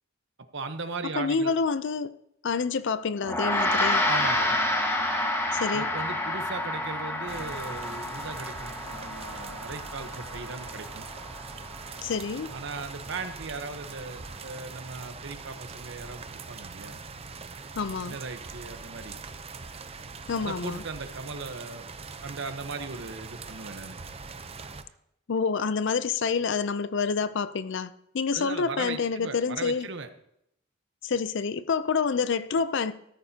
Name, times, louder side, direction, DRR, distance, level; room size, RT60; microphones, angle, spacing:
voice 1, 0.5-1.5 4.1-4.6 5.7-11.1 12.5-17.0 18.0-19.2 20.4-21.9 22.2-24.0 28.3-30.1, right 4 dB, 65° right, 1.0 m, -38 dB
voice 2, 1.2-2.1 2.4-4.0 5.5-5.9 12.0-12.5 17.8-18.2 20.3-20.8 25.3-29.9 31.0-32.9, left 5 dB, 65° left, 0.5 m, -28 dB
Gong, 3.2-12.9, left 1 dB, 15° left, 1.5 m, -29 dB
sound 1, 7.3-24.8, right 4 dB, 30° right, 0.7 m, -42 dB
14.0 x 13.5 x 2.8 m
head